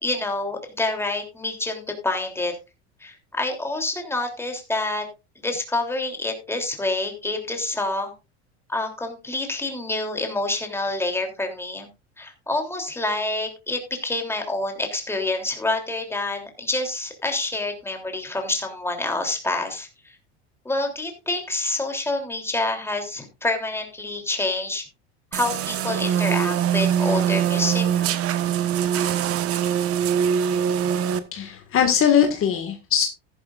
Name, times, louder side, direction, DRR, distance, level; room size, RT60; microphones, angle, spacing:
voice 1, 0.0-2.6 3.0-5.1 5.3-8.1 8.7-11.9 12.2-20.2 20.6-24.8 25.3-28.1, left 2 dB, 5° left, 3 dB, 3.2 m, -27 dB
sound 1, 25.3-31.2, right 9 dB, 45° right, 1.3 m, -23 dB
voice 2, 31.3-33.0, left 8 dB, 40° left, 5 dB, 1.9 m, -20 dB
14.0 x 11.5 x 2.5 m, 0.28 s
supercardioid pair, 120°, 33 cm